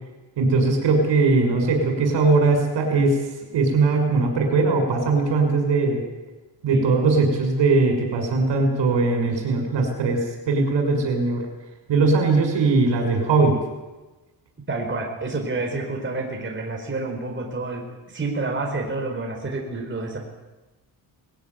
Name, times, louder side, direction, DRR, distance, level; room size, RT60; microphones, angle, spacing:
voice 1, 0.4-3.2 3.5-6.0 6.6-10.2 10.5-11.4 11.9-13.6, right 3 dB, 75° right, 3 dB, 6.3 m, -20 dB
voice 2, 14.7-20.2, right 3 dB, 25° right, 1 dB, 4.4 m, -29 dB
20.5 x 16.5 x 9.5 m, 1.1 s
cardioid pair, 120°, 44 cm